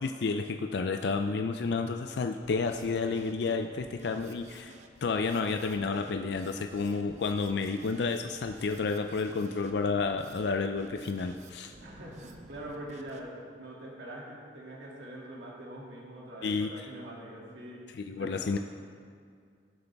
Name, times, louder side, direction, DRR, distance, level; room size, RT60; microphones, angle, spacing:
voice 1, 0.0-4.7 5.0-11.7 16.4-16.7 18.1-18.6, left 4 dB, 65° left, 6 dB, 0.4 m, -30 dB
Drum kit, 2.4-13.2, right 2 dB, 40° right, 0.7 m, -53 dB
voice 2, 11.8-17.9 18.2-18.6, right 1 dB, 70° right, -4 dB, 2.5 m, -44 dB
18.0 x 7.9 x 3.5 m, 2.1 s
head